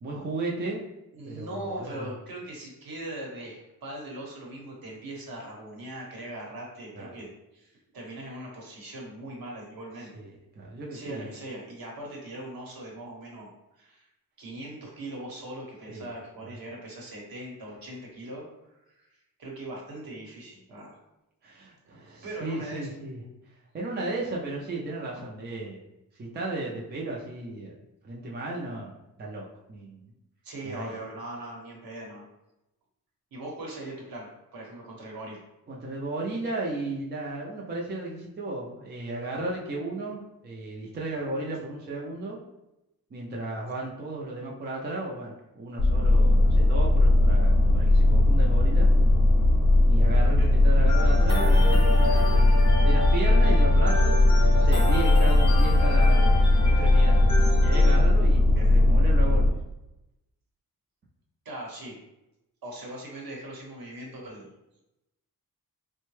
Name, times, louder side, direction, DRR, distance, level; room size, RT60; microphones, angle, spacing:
voice 1, 0.0-0.8 1.3-2.1 6.9-7.2 10.1-11.3 15.9-16.1 16.4-16.6 21.4-23.2 23.7-25.8 26.2-27.7 28.0-30.1 30.6-31.0 35.7-42.4 43.1-48.9 49.9-56.3 56.8-57.2 57.6-59.4, right 2 dB, 30° right, -3 dB, 0.4 m, -35 dB
voice 2, 1.1-10.1 10.9-13.5 13.8-14.0 14.4-18.5 18.9-19.1 19.4-21.0 22.2-22.9 30.4-32.2 33.3-35.4 50.3-50.5 58.5-58.9 61.4-62.0 62.6-64.5, right 1 dB, 70° right, -1 dB, 1.0 m, -40 dB
sound 1, 45.8-59.5, left 1 dB, 55° left, 0.7 m, -19 dB
sound 2, 50.9-58.0, left 2 dB, 15° left, 0.6 m, -32 dB
3.6 x 2.2 x 3.0 m, 0.91 s
wide cardioid pair, 165°, 36 cm